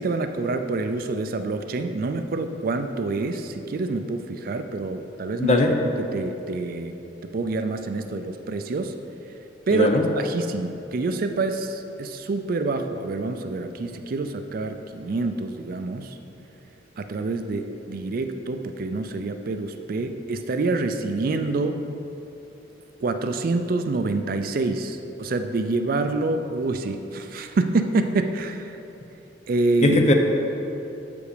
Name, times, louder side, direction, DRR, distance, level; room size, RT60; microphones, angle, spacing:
voice 1, 0.0-5.6 6.0-7.0 7.2-8.9 9.7-9.9 10.2-16.2 17.0-21.8 23.0-28.8 29.5-30.0, right 3 dB, 50° right, 8 dB, 0.4 m, -27 dB
voice 2, 5.4-5.7 9.7-10.0 29.8-30.1, left 2 dB, 35° left, 3 dB, 0.6 m, -19 dB
7.7 x 5.1 x 4.9 m, 3.0 s
head